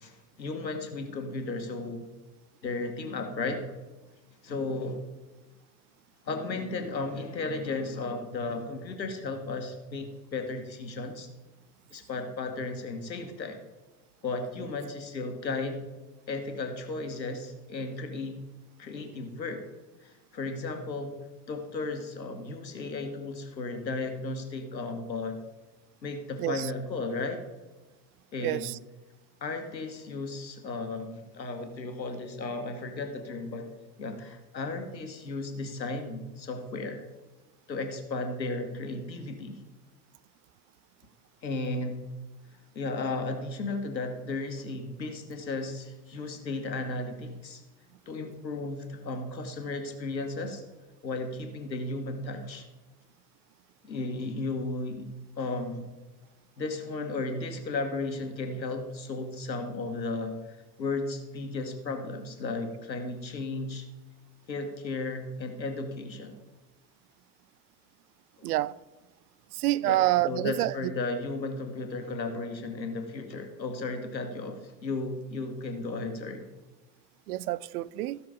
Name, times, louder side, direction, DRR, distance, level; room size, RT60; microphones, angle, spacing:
voice 1, 0.0-2.1 2.6-3.7 4.4-5.0 6.2-11.3 11.9-13.6 14.2-15.8 16.3-18.4 18.8-19.6 20.0-21.1 21.5-25.4 26.0-27.4 28.3-28.7 29.4-33.7 34.0-37.0 37.7-39.6 41.4-42.1 42.8-47.6 48.1-50.6 51.0-52.6 53.8-55.1 55.4-55.9 56.6-63.8 64.5-66.4 68.4-68.5 69.8-76.4, left 3 dB, 85° left, 1.6 m, -34 dB
voice 2, 26.4-26.7 28.4-28.8 68.4-68.8 69.5-70.7 77.3-78.2, right 15 dB, 65° right, 0.6 m, -27 dB
15.5 x 6.1 x 5.1 m
figure-of-eight pair, 75°, 50 cm